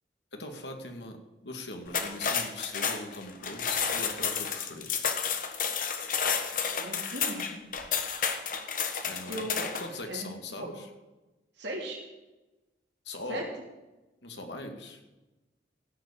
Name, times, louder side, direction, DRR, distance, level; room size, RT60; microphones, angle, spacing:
voice 1, 0.3-1.2 1.4-5.0 9.0-10.9 13.0-13.5 14.2-15.0, left 2 dB, 80° left, 4 dB, 2.2 m, -40 dB
sound 1, 1.9-10.0, left 6 dB, 45° left, 1.4 m, -31 dB
voice 2, 6.8-7.5 9.3-9.5 10.1-10.8 11.6-12.0 13.3-13.4, right 1 dB, 75° right, -2 dB, 3.3 m, -38 dB
15.5 x 7.2 x 8.8 m, 1.1 s
head